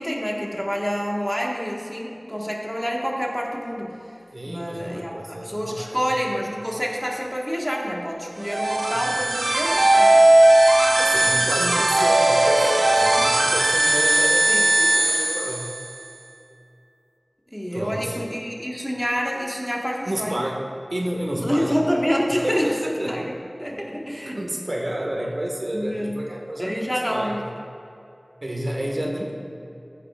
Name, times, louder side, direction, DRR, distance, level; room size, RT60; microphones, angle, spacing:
voice 1, 0.0-4.0 4.5-10.3 11.6-11.8 12.1-12.2 14.5-14.6 17.5-20.4 21.4-22.7 23.1-23.3 23.6-24.4 25.7-26.2 26.6-27.5, equal, ahead, -2 dB, 1.5 m, -27 dB
voice 2, 4.3-6.0 8.7-9.2 11.0-15.7 17.7-18.2 20.1-20.6 20.9-21.8 22.3-23.3 24.3-27.4 28.4-29.3, right 1 dB, 60° right, -1 dB, 1.6 m, -30 dB
sound 1, 8.4-16.1, right 1 dB, 85° right, 0.6 m, -18 dB
15.0 x 9.6 x 2.4 m, 2.8 s
wide cardioid pair, 45°, 0 cm